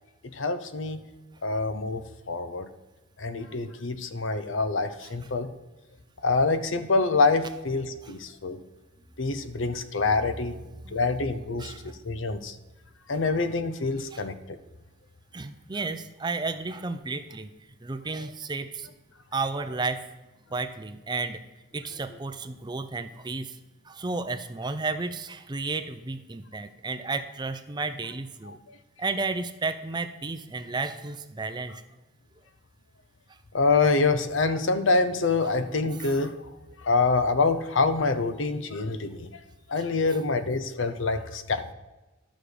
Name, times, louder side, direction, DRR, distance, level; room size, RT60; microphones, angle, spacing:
voice 1, 0.2-1.0 1.4-2.7 3.2-5.5 6.2-8.6 9.2-10.6 10.9-12.6 13.1-14.6 28.4-28.8 33.5-36.5 36.8-39.3 39.7-41.7, left 3 dB, 65° left, 11 dB, 0.8 m, -26 dB
voice 2, 11.6-12.0 14.1-14.2 15.3-17.5 17.8-18.9 19.3-20.1 20.5-21.4 21.7-23.6 23.8-28.6 29.0-31.8 33.3-33.4 35.4-35.5 36.0-36.1 40.1-40.2, right 3 dB, 20° right, 9 dB, 0.5 m, -32 dB
12.0 x 6.3 x 5.0 m, 1.1 s
head